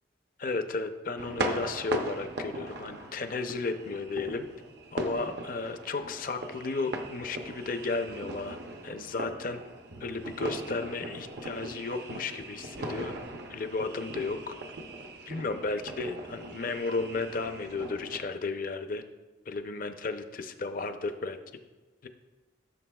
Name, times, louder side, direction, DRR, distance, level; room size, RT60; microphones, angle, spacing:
voice 1, 0.4-4.4 4.9-8.6 8.8-9.6 10.0-13.1 13.5-14.5 15.3-19.0 19.5-21.4 22.0-22.1, left 3 dB, 45° left, 8 dB, 0.6 m, -34 dB
sound 1, 1.2-18.2, right 1 dB, 55° right, 0.7 m, -39 dB
15.0 x 6.7 x 2.3 m, 1.2 s
head